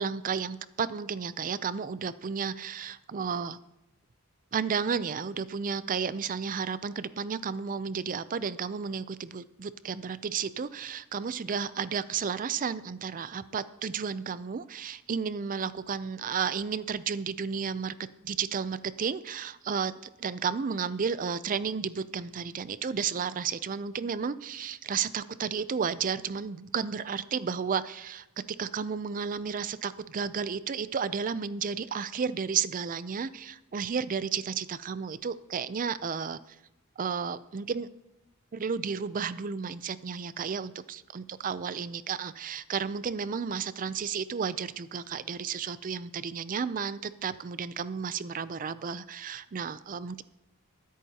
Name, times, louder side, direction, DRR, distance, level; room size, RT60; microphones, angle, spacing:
voice 1, 0.0-3.6 4.5-17.9 18.2-19.9 20.2-28.3 28.6-36.4 37.0-37.9 38.5-50.2, right 6 dB, 40° right, 15 dB, 0.4 m, -32 dB
23.5 x 8.5 x 2.9 m, 0.90 s
head